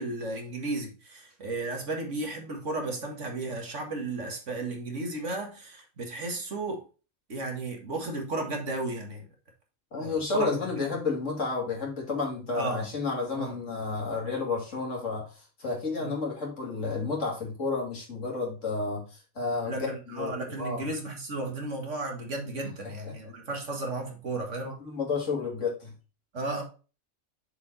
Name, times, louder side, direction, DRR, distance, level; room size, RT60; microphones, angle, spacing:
voice 1, 0.0-6.8 7.3-9.3 9.9-10.5 10.8-10.9 12.5-12.9 13.3-13.7 16.0-16.1 19.6-24.8 26.3-26.6, right 2 dB, 60° right, 2.0 m, -34 dB
voice 2, 9.9-20.8 23.0-23.1 24.6-25.9, left 4 dB, 65° left, 3.0 m, -31 dB
6.9 x 4.9 x 4.1 m
omnidirectional pair, 1.4 m